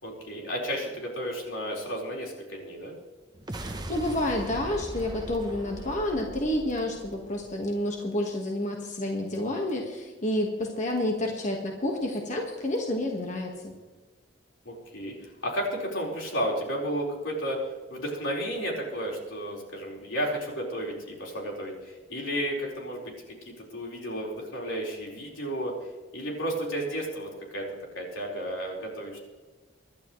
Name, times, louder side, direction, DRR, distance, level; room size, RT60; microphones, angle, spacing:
voice 1, 0.0-2.9 5.5-6.0 14.6-17.6 17.9-23.1 23.4-25.8 26.1-27.7 27.9-29.2, equal, 85° left, -2 dB, 4.7 m, -33 dB
sound 1, 3.3-7.9, right 1 dB, 20° right, 0.9 m, -40 dB
voice 2, 3.5-13.7, left 1 dB, 40° left, 1 dB, 1.6 m, -29 dB
25.0 x 11.5 x 3.2 m, 1.3 s
head